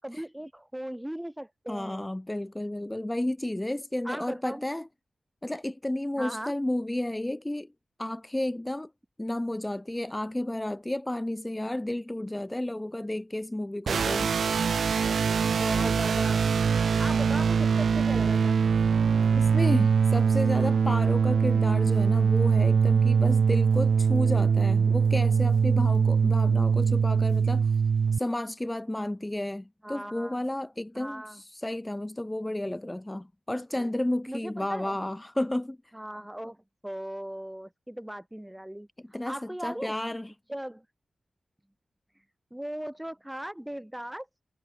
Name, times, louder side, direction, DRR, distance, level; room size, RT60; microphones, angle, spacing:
voice 1, 0.0-2.1 4.0-4.6 6.2-6.5 15.5-16.5 17.0-18.6 29.8-30.4 30.9-31.4 33.7-33.9 34.3-35.0 35.9-38.9 39.2-39.9 40.5-40.9 42.5-44.3, right 1 dB, 5° right, 6.1 m, -38 dB
voice 2, 1.7-4.9 5.4-7.7 8.0-8.9 9.2-14.3 19.3-27.7 28.1-35.8 39.1-40.3, left 1 dB, 15° left, 3.6 m, -32 dB
sound 1, 13.9-28.2, right 6 dB, 85° right, 0.4 m, -23 dB
wide cardioid pair, 85°, 0 cm